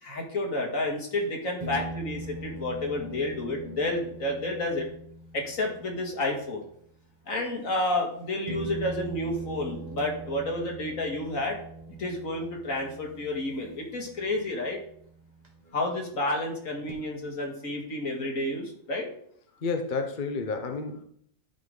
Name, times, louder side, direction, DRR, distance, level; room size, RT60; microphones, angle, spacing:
voice 1, 0.0-4.9 5.3-6.6 7.3-11.6 12.0-14.8 15.7-19.1, left 2 dB, 70° left, 1 dB, 2.4 m, -30 dB
sound 1, 0.8-0.9 1.6-6.7 7.9-8.0 8.5-15.8 16.9-17.0, right 2 dB, 30° right, 1.6 m, -41 dB
voice 2, 19.6-21.0, left 4 dB, 40° left, 5 dB, 0.9 m, -30 dB
12.5 x 5.8 x 3.8 m, 0.65 s
omnidirectional pair, 1.5 m